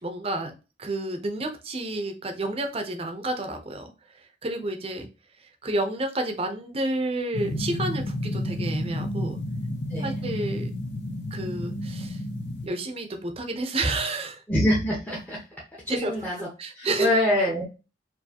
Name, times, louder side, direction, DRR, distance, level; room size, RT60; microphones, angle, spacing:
voice 1, 0.0-5.1 5.6-9.4 10.0-10.7 11.3-12.2 12.6-14.4 15.9-16.1 16.6-17.1, right 2 dB, 30° right, 5 dB, 0.7 m, -30 dB
sound 1, 7.3-12.7, left 1 dB, 70° left, 0.8 m, -31 dB
voice 2, 14.5-15.4 15.8-16.5 16.7-17.6, left 1 dB, 10° left, -5 dB, 0.9 m, -25 dB
4.6 x 2.7 x 2.8 m, 0.31 s
head